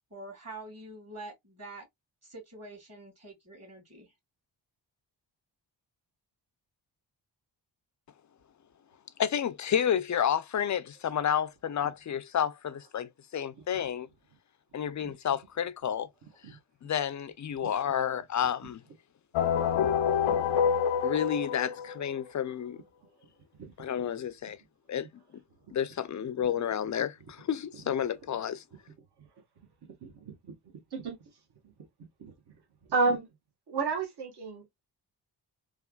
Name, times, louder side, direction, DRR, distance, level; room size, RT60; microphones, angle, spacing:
voice 1, 0.1-1.9 2.2-4.1, right 2 dB, 35° right, 1.8 m, -46 dB
voice 2, 9.2-14.1 14.7-16.1 16.5-18.8 21.0-22.8 23.8-24.6 24.9-25.1 25.7-28.6, left 9 dB, 40° left, 0.4 m, -30 dB
sound 1, 19.3-22.2, left 7 dB, 85° left, 0.6 m, -27 dB
voice 3, 30.0-30.5 30.9-31.2 32.2-32.3 32.9-33.2 33.7-34.6, right 3 dB, 55° right, 1.2 m, -31 dB
3.3 x 2.3 x 2.2 m
cardioid pair, 80°, 46 cm